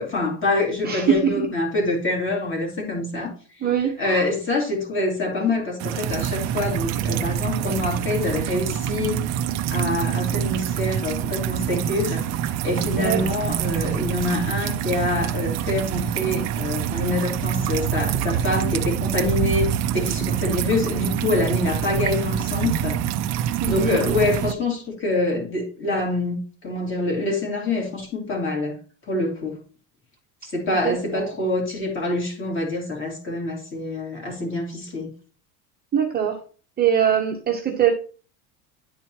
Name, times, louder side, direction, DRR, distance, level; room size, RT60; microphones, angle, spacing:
voice 1, 0.0-3.3 3.6-3.7 4.0-9.2 9.7-23.0 23.3-28.8 29.1-29.6 30.5-35.1, left 2 dB, 25° left, 0 dB, 2.5 m, -26 dB
voice 2, 0.8-1.5 3.6-4.3 12.9-13.2 23.6-24.0 30.8-31.3 35.9-36.4 36.8-37.9, right 8 dB, 20° right, 0 dB, 0.8 m, -22 dB
sound 1, 5.8-24.5, right 10 dB, 40° right, 0.4 m, -25 dB
10.0 x 4.3 x 2.9 m, 0.38 s
cardioid pair, 150°, 44 cm